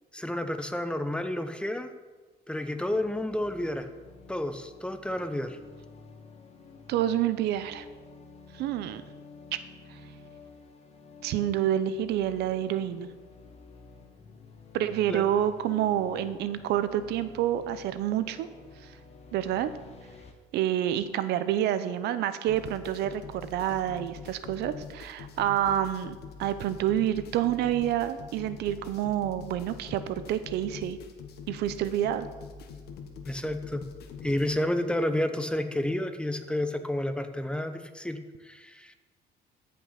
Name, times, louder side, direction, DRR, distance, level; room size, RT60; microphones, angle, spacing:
voice 1, 0.1-1.9 2.5-3.9 4.3-5.6 15.1-15.2 33.2-33.8 34.2-38.9, left 1 dB, 5° left, 9 dB, 0.8 m, -30 dB
sound 1, 2.7-20.3, left 4 dB, 40° left, 1.5 m, -51 dB
voice 2, 6.9-7.8 8.5-9.0 9.9-10.0 11.2-13.1 14.7-18.5 18.8-18.9 19.3-19.7 20.5-31.0 31.5-32.3, right 11 dB, 80° right, 12 dB, 0.7 m, -28 dB
sound 2, 22.5-34.5, left 5 dB, 70° left, 1.3 m, -44 dB
13.5 x 5.8 x 5.8 m, 1.3 s
cardioid pair, 110°, 17 cm